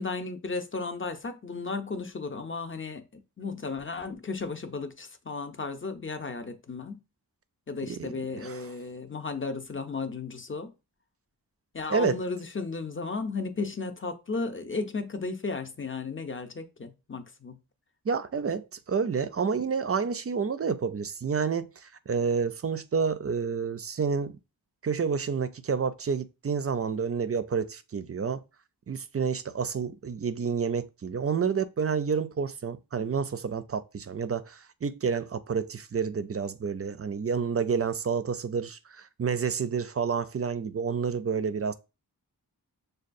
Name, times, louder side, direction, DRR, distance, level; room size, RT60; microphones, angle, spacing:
voice 1, 0.0-7.0 7.7-10.7 11.7-17.6, left 4 dB, 30° left, 0.6 m, -34 dB
voice 2, 7.9-8.6 11.9-12.2 18.1-24.4 24.8-28.4 28.9-41.7, right 6 dB, 40° right, 0.4 m, -29 dB
6.3 x 2.3 x 2.5 m
wide cardioid pair, 60°, 40 cm